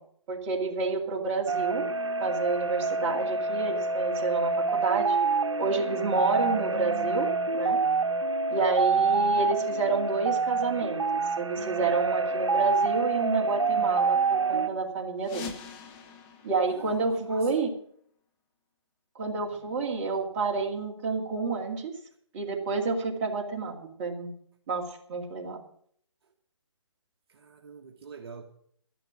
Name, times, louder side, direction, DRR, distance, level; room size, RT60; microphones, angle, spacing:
voice 1, 0.3-1.9 2.2-7.8 8.5-11.0 11.4-15.5 16.4-17.7 19.2-21.9 22.3-24.3 24.7-25.6, right 4 dB, 25° right, 2.3 m, -29 dB
sound 1, 1.5-14.7, right 4 dB, 70° right, 1.2 m, -27 dB
sound 2, 15.2-17.8, left 6 dB, 15° left, 0.9 m, -44 dB
voice 2, 17.3-17.6 19.5-19.7 27.3-28.4, right 5 dB, 50° right, 1.4 m, -46 dB
13.0 x 11.0 x 6.2 m
hypercardioid pair, 155°, 16 cm